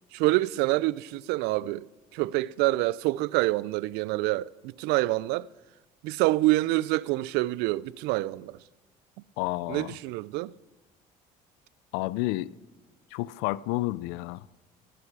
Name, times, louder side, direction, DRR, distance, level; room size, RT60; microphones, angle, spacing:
voice 1, 0.1-5.5 6.0-8.6 9.7-10.5, right 18 dB, 75° right, 0.4 m, -27 dB
voice 2, 9.4-10.0 11.9-12.5 13.1-14.5, left 18 dB, 85° left, 0.4 m, -30 dB
16.5 x 12.0 x 4.8 m
supercardioid pair, 100°, 17 cm